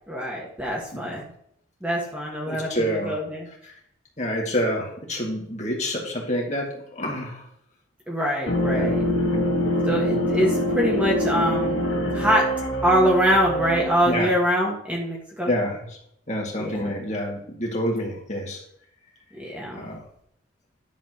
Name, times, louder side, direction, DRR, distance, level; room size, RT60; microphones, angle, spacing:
voice 1, 0.1-1.3 1.8-3.5 8.1-9.0 9.9-11.9 12.1-12.4 12.8-15.5 16.6-16.9 19.3-19.8, equal, 5° right, -3 dB, 1.5 m, -24 dB
voice 2, 2.5-3.1 3.6-3.7 4.2-7.4 8.7-8.9 9.3-9.5 14.0-14.3 15.5-16.0 16.3-18.6 19.7-20.0, equal, 35° left, -1 dB, 2.2 m, -28 dB
sound 1, 8.5-14.2, equal, 80° left, 1.9 m, -24 dB
10.5 x 7.3 x 3.0 m, 0.69 s
head